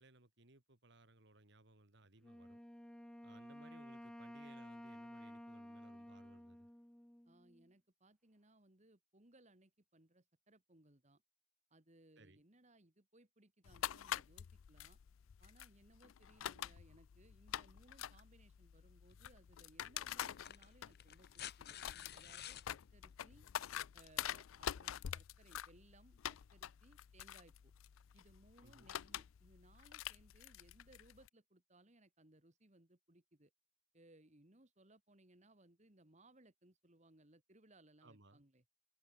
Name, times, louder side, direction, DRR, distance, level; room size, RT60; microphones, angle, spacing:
voice 1, 0.0-2.6 3.2-6.7 12.2-12.5 28.6-28.9 38.0-38.4, right 2 dB, 60° right, 2.6 m, -64 dB
Wind instrument woodwind instrument, 2.2-7.7, equal, 5° left, 0.4 m, -54 dB
voice 2, 7.3-11.2 11.7-15.0 15.4-21.8 22.1-23.5 23.9-27.7 28.1-33.5 33.9-38.6, right 1 dB, 35° right, 2.4 m, -66 dB
sound 1, 13.7-31.3, left 10 dB, 80° left, 0.4 m, -47 dB
sound 2, 19.1-19.2 20.2-22.7 24.2-24.3, left 11 dB, 50° left, 0.9 m, -51 dB
head